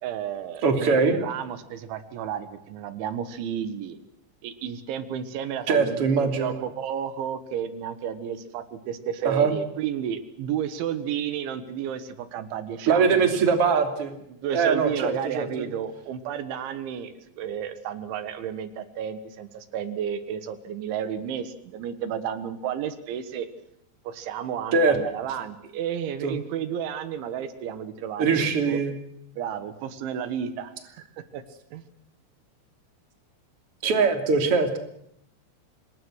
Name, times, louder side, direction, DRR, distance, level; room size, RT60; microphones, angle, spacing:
voice 1, 0.0-4.0 4.4-13.5 14.3-23.5 24.1-28.8 29.4-31.4 31.7-31.8, right 9 dB, 85° right, 11 dB, 3.9 m, -32 dB
voice 2, 0.6-1.1 5.7-6.5 9.2-9.5 12.9-14.1 14.5-15.7 24.7-25.0 26.2-26.3 28.2-28.9 33.8-34.8, right 5 dB, 35° right, 6 dB, 3.3 m, -22 dB
26.0 x 22.5 x 6.4 m, 0.76 s
omnidirectional pair, 5.3 m